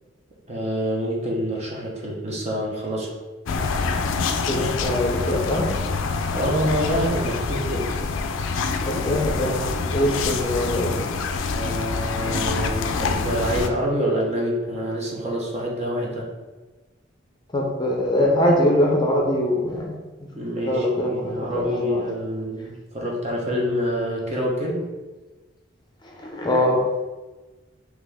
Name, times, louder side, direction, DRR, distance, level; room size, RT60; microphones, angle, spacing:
voice 1, 0.5-3.1 6.3-7.9 11.5-16.3 20.4-24.9, equal, 35° right, -3 dB, 0.9 m, -26 dB
sound 1, 3.5-13.7, left 4 dB, 90° left, 0.4 m, -26 dB
voice 2, 4.4-5.7 8.8-11.0 17.5-19.9 20.6-22.0 26.0-26.8, left 1 dB, 25° left, -1 dB, 0.6 m, -23 dB
4.0 x 3.1 x 3.5 m, 1.2 s
head